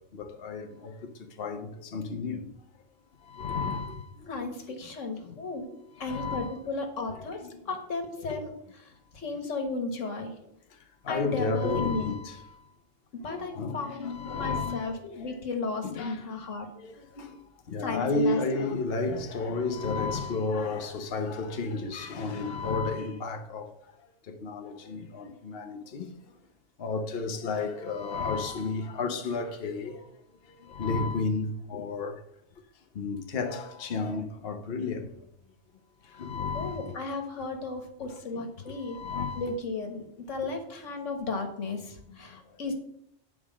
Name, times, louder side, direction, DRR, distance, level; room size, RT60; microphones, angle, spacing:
voice 1, 0.1-0.9 1.4-2.5 3.3-4.0 5.3-5.4 6.0-6.5 7.1-7.6 8.2-8.4 10.0-10.1 11.0-12.4 13.3-15.3 15.8-16.2 16.8-17.3 17.7-23.7 24.3-26.1 26.8-30.0 30.7-32.1 33.0-35.1 36.2-36.9 38.3-38.4 38.9-39.5 40.4-40.5 42.1-42.2, left 3 dB, 55° left, 1.1 m, -32 dB
voice 2, 4.3-5.7 6.0-7.4 7.7-8.5 8.8-10.3 11.1-12.1 13.2-16.7 17.8-18.4 36.5-39.0 39.4-42.7, left 3 dB, 85° left, 1.8 m, -34 dB
9.5 x 4.9 x 7.2 m
omnidirectional pair, 1.3 m